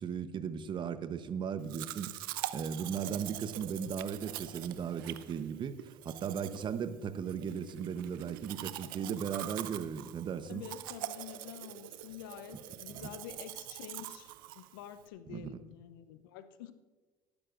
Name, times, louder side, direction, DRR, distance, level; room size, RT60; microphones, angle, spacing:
voice 1, 0.0-10.6 12.9-13.1 15.3-15.5, right 7 dB, 45° right, 12 dB, 0.9 m, -37 dB
Domestic sounds home sounds, 1.7-15.1, right 15 dB, 85° right, 0.5 m, -44 dB
voice 2, 10.5-16.7, left 9 dB, 80° left, 12 dB, 0.8 m, -48 dB
18.5 x 10.0 x 2.5 m, 1.3 s
hypercardioid pair, 70°, 11 cm